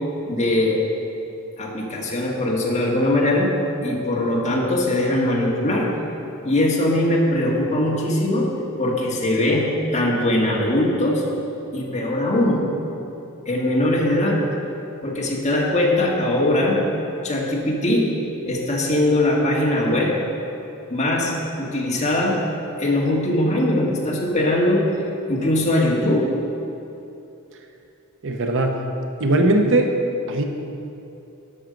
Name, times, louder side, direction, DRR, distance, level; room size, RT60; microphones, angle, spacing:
voice 1, 0.2-0.8 1.6-3.5 3.8-5.9 6.4-8.5 8.8-9.7 9.9-11.2 11.7-12.6 13.4-14.4 15.0-16.8 17.2-18.1 18.4-20.1 20.9-21.3 21.6-22.4 22.8-24.9 25.3-26.3, left 1 dB, 30° left, -3 dB, 1.7 m, -21 dB
voice 2, 28.2-28.7 29.2-29.9 30.3-30.4, right 2 dB, 60° right, 4 dB, 0.8 m, -19 dB
11.5 x 6.3 x 5.2 m, 2.9 s
head